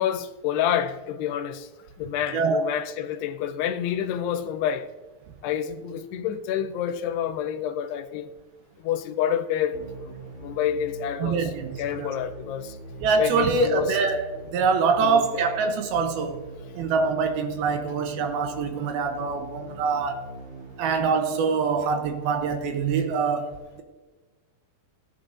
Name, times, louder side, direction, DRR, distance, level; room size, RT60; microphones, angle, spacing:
voice 1, 0.0-1.7 2.0-4.9 5.4-8.3 8.8-9.8 10.4-11.5 11.8-12.8 13.2-14.0 15.0-15.5, left 9 dB, 85° left, 2.7 m, -28 dB
voice 2, 2.3-2.6 11.2-11.7 12.0-12.1 13.0-16.4 16.7-20.2 20.8-23.8, right 5 dB, 75° right, 2.6 m, -24 dB
sound 1, 9.7-21.7, right 2 dB, 25° right, 1.8 m, -43 dB
17.5 x 8.6 x 2.5 m
omnidirectional pair, 4.7 m